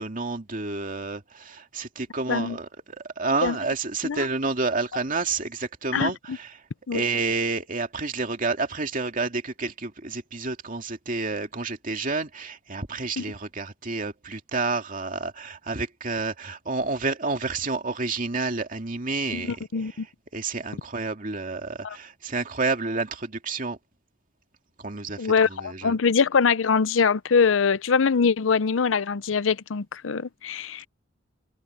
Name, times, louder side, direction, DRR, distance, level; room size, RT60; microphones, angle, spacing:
voice 1, 0.0-6.5 6.9-19.6 20.3-23.8 24.8-25.9, right 3 dB, 45° right, 2.4 m, -29 dB
voice 2, 5.9-6.4 6.9-7.0 13.2-13.3 19.3-20.1 21.8-22.0 25.2-30.9, left 5 dB, 85° left, 0.6 m, -23 dB
open air
head